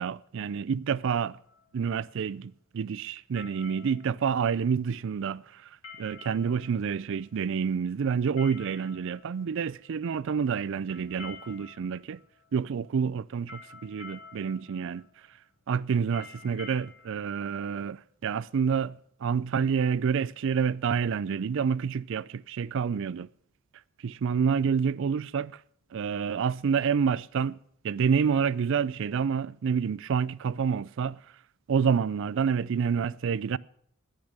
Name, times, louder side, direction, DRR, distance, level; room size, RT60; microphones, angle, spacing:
voice 1, 0.0-1.4 1.7-5.7 6.0-12.2 12.5-15.0 15.7-23.3 24.0-25.6 25.9-27.6 27.8-31.2 31.7-33.6, right 6 dB, 65° right, 0.4 m, -28 dB
sound 1, 1.4-18.6, left 4 dB, 65° left, 3.6 m, -51 dB
10.5 x 10.5 x 6.5 m
head